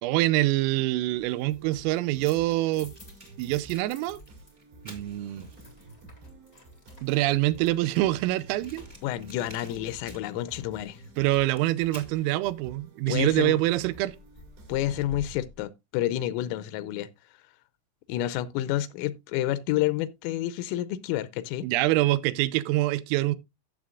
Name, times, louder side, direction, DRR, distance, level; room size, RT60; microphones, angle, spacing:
voice 1, 0.0-2.9 3.4-4.2 4.9-5.5 7.0-8.8 11.2-14.2 21.6-23.4, right 17 dB, 85° right, 3.3 m, -25 dB
sound 1, 1.1-15.1, right 2 dB, 60° right, 5.1 m, -51 dB
sound 2, 1.9-4.5 4.8-10.4 13.4-15.6, left 2 dB, 60° left, 0.6 m, -52 dB
Fire, 2.0-5.8 6.5-6.6 6.8-6.9 7.1-7.2 7.7-10.6 11.0-12.2, right 1 dB, 20° right, 1.3 m, -52 dB
voice 2, 9.0-11.0 13.1-13.6 14.7-17.1 18.1-21.7, left 13 dB, 85° left, 3.2 m, -29 dB
14.0 x 7.5 x 2.4 m
omnidirectional pair, 5.8 m